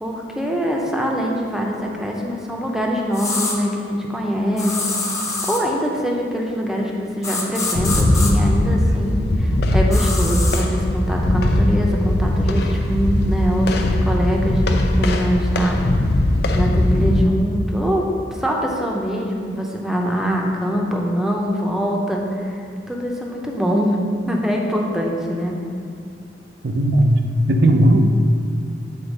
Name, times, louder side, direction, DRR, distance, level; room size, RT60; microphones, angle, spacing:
voice 1, 0.0-4.8 5.4-15.8 16.5-18.1 18.4-22.6 22.9-24.0 24.3-25.5, equal, 5° right, -1 dB, 0.7 m, -23 dB
sound 1, 3.1-3.6 4.6-5.6 7.2-8.3 9.9-10.6, left 3 dB, 20° left, 0.9 m, -25 dB
sound 2, 7.8-17.2, left 1 dB, 65° left, 0.5 m, -19 dB
voice 2, 26.6-28.0, right 1 dB, 65° right, 5 dB, 0.6 m, -16 dB
8.0 x 4.0 x 5.2 m, 2.3 s
head